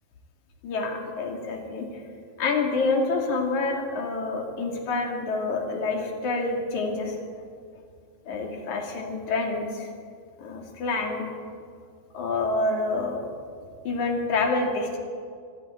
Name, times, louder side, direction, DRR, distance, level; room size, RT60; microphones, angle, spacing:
voice 1, 0.6-2.0 2.4-7.2 8.3-9.9 10.4-11.2 12.1-13.2 13.9-15.0, left 3 dB, 55° left, 2 dB, 3.6 m, -27 dB
23.0 x 13.0 x 9.1 m, 2.2 s
omnidirectional pair, 4.2 m